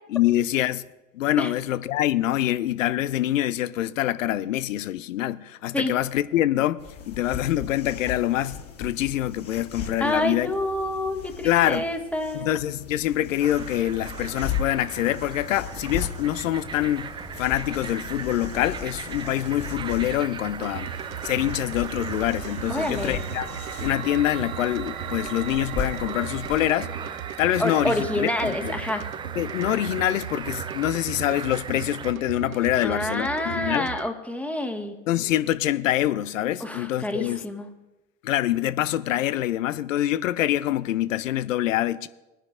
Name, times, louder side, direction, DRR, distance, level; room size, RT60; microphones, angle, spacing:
voice 1, 0.1-0.9 1.1-10.5 11.4-11.8 12.3-17.1 17.4-20.9 21.2-23.5 23.8-26.9 27.4-28.7 29.4-33.9 35.1-37.4 38.2-42.1, left 13 dB, 70° left, 0.6 m, -25 dB
sound 1, 6.8-26.7, left 6 dB, 35° left, 2.3 m, -38 dB
voice 2, 10.0-12.5 22.7-23.2 27.6-29.1 32.8-34.9 36.6-37.7, left 1 dB, 5° left, 1.4 m, -28 dB
sound 2, 13.4-32.1, right 6 dB, 15° right, 0.3 m, -38 dB
sound 3, 20.6-34.1, right 10 dB, 85° right, 0.5 m, -37 dB
20.5 x 10.0 x 2.5 m
figure-of-eight pair, 70°, 40 cm